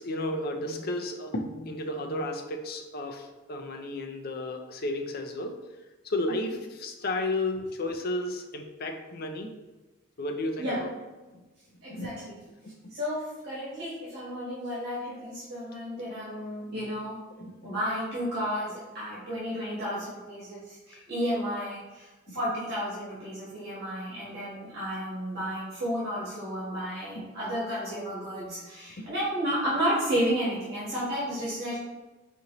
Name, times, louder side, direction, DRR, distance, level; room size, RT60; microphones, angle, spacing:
voice 1, 0.0-5.6 6.0-9.6 10.2-10.9 11.9-12.1 17.5-17.8 22.3-22.4 27.1-27.2 29.0-29.1, left 1 dB, 50° left, 4 dB, 0.5 m, -33 dB
voice 2, 11.8-12.3 12.9-17.2 17.6-31.8, equal, 55° right, -9 dB, 1.4 m, -32 dB
4.3 x 3.9 x 2.9 m, 1.2 s
head